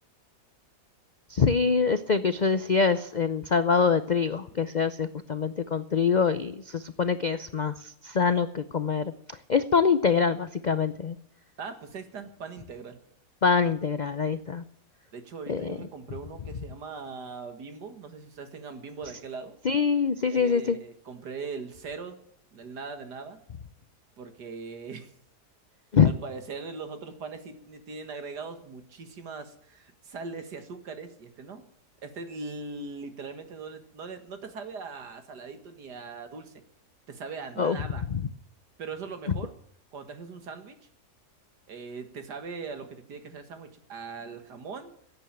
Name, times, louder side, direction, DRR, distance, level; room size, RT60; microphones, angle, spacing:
voice 1, 1.3-9.1 9.5-11.2 13.4-14.6 15.5-15.8 19.6-20.8 25.9-26.1 37.6-37.8 38.1-38.2, left 5 dB, 80° left, 12 dB, 0.4 m, -24 dB
voice 2, 11.6-13.0 15.1-19.6 20.3-22.2 22.5-23.4 24.2-25.1 26.0-31.7 32.0-36.5 37.1-38.1 38.8-39.5 39.9-40.8 41.7-44.9, right 4 dB, 85° right, 8 dB, 2.4 m, -40 dB
16.5 x 9.1 x 8.9 m, 0.69 s
omnidirectional pair, 1.7 m